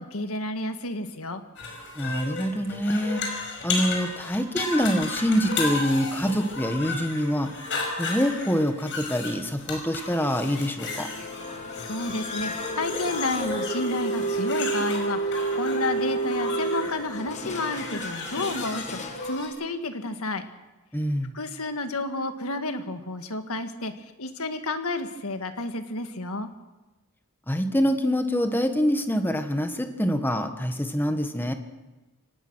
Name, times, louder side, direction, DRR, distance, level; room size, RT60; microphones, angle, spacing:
voice 1, 0.0-1.4 11.7-19.0 19.3-20.4 21.3-23.9 24.2-26.5, left 2 dB, 70° left, 7 dB, 1.8 m, -31 dB
sound 1, 1.6-19.5, left 3 dB, 55° left, 5.7 m, -34 dB
voice 2, 1.9-3.2 3.6-7.5 8.0-11.1 20.9-21.3 27.5-31.5, equal, 10° left, 7 dB, 1.5 m, -25 dB
sound 2, 10.8-17.9, left 3 dB, 90° left, 4.1 m, -41 dB
sound 3, 11.1-19.4, right 3 dB, 30° left, 1.7 m, -31 dB
24.0 x 18.5 x 6.3 m, 1.1 s
head